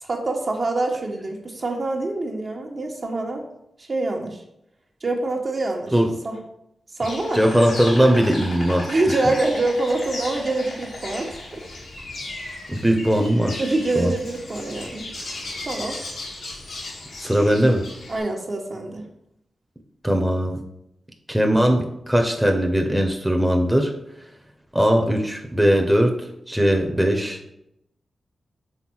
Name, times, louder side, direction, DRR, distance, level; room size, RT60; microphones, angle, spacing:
voice 1, 0.0-3.4 3.8-4.4 5.0-5.9 6.2-6.4 7.0-7.4 8.9-11.6 13.6-15.1 15.6-16.0 18.1-19.1, right 2 dB, 50° right, 1 dB, 1.3 m, -25 dB
Insect, 7.0-18.2, left 2 dB, 75° left, 1.7 m, -36 dB
voice 2, 7.3-8.9 12.7-13.6 14.0-14.1 17.2-17.8 20.0-20.6 21.3-23.9 24.7-26.1 26.5-27.5, equal, ahead, 2 dB, 1.0 m, -19 dB
5.7 x 3.5 x 4.7 m, 0.80 s
cardioid pair, 45°, 0 cm